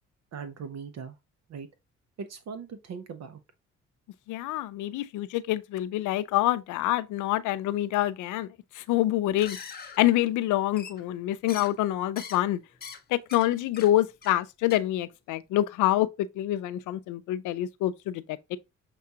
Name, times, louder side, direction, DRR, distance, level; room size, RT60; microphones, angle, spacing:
voice 1, 0.3-1.2 1.5-1.7 2.2-3.4, right 6 dB, 60° right, 0.6 m, -39 dB
voice 2, 4.3-8.5 8.7-9.6 10.0-12.6 13.1-16.1 16.4-18.6, left 14 dB, 85° left, 0.5 m, -26 dB
sound 1, 9.3-10.0 10.8-11.2 11.5-11.8 12.1-12.4 12.7-13.0 13.3-13.5 13.7-13.9 14.2-14.4 14.7-14.8, left 6 dB, 30° left, 0.8 m, -42 dB
6.6 x 2.4 x 2.8 m
cardioid pair, 90°, 30 cm